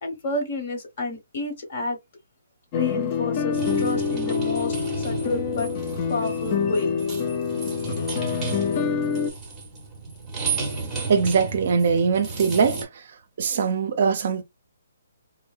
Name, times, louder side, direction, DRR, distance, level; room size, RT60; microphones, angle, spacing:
voice 1, 0.0-2.0 2.7-5.7 6.1-7.1, left 2 dB, 45° left, 1.1 m, -30 dB
sound 1, 2.7-9.3, left 6 dB, 30° left, 0.3 m, -26 dB
sound 2, 3.5-12.8, right 4 dB, 10° right, 0.7 m, -33 dB
voice 2, 11.1-12.9 13.4-14.4, right 5 dB, 50° right, 0.5 m, -21 dB
2.7 x 2.0 x 2.3 m
hypercardioid pair, 160°, 0 cm